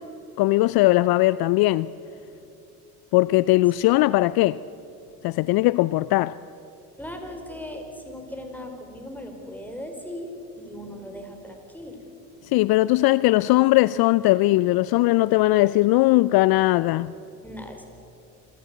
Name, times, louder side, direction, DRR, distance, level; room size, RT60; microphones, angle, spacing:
voice 1, 0.4-1.9 3.1-4.6 5.2-6.4 12.5-17.1, left 18 dB, 60° left, 0.5 m, -19 dB
voice 2, 7.0-10.3 10.6-12.0 17.4-17.9, equal, 5° left, 4.9 m, -38 dB
27.5 x 13.5 x 8.3 m
hypercardioid pair, 60°, 43 cm